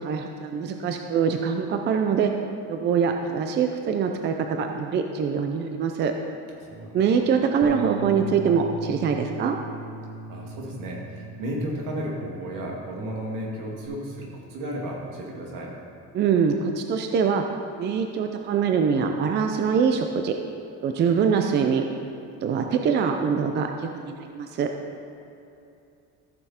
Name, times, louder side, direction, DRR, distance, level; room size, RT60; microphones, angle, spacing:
voice 1, 0.0-2.3 2.7-6.1 6.9-9.6 16.1-17.4 17.8-20.4 20.8-21.9 22.4-24.7, right 6 dB, 35° right, 5 dB, 0.5 m, -24 dB
voice 2, 6.5-7.1 10.3-15.8, right 1 dB, 80° right, -2 dB, 2.3 m, -33 dB
Bass guitar, 7.6-13.9, right 2 dB, 15° right, 1.0 m, -39 dB
14.5 x 6.9 x 4.3 m, 2.7 s
cardioid pair, 175°, 31 cm